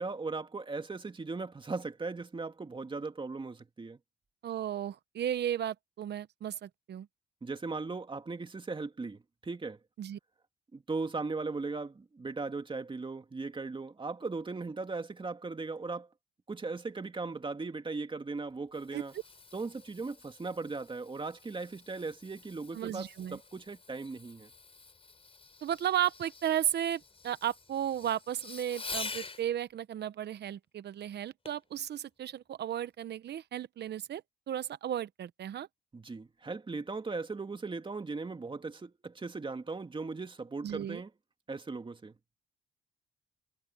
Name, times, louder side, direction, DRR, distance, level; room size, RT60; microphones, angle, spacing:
voice 1, 0.0-4.0 7.4-9.8 10.7-16.1 16.5-19.1 19.5-24.5 35.9-41.1 41.5-42.1, right 3 dB, 25° right, 2.3 m, -38 dB
voice 2, 4.4-7.1 10.0-10.2 18.9-19.0 22.7-23.4 25.6-34.2 34.5-35.7 40.6-41.0, right 10 dB, 60° right, 0.9 m, -34 dB
Fireworks, 18.5-29.5 31.5-31.7 32.3-32.4, left 4 dB, 30° left, 5.2 m, -47 dB
cardioid pair, 90°, 20 cm